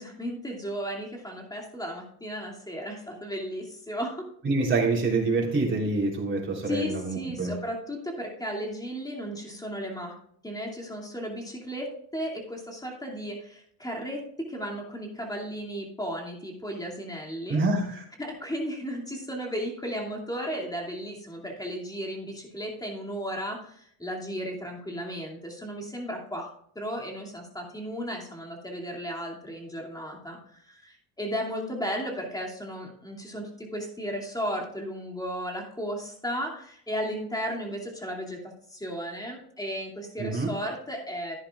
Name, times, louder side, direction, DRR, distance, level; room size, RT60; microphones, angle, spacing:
voice 1, 0.0-4.2 6.7-10.1 10.4-17.6 18.2-26.5 26.7-38.4 38.7-41.4, equal, 10° left, -1 dB, 2.6 m, -35 dB
voice 2, 4.4-7.6 17.5-18.0 40.2-40.5, right 3 dB, 30° right, -2 dB, 3.6 m, -26 dB
11.5 x 10.0 x 2.4 m, 0.66 s
cardioid pair, 85°, 39 cm